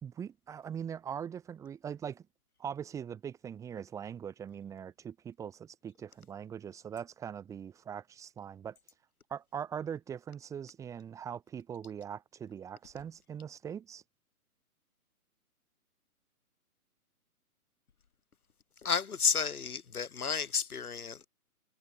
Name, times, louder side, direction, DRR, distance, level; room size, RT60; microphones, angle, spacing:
voice 1, 0.0-2.2 2.6-8.8 9.3-14.0, right 8 dB, 5° right, 4.2 m, -41 dB
voice 2, 18.8-21.3, left 6 dB, 70° left, 6.7 m, -32 dB
hypercardioid pair, 175°, 45 cm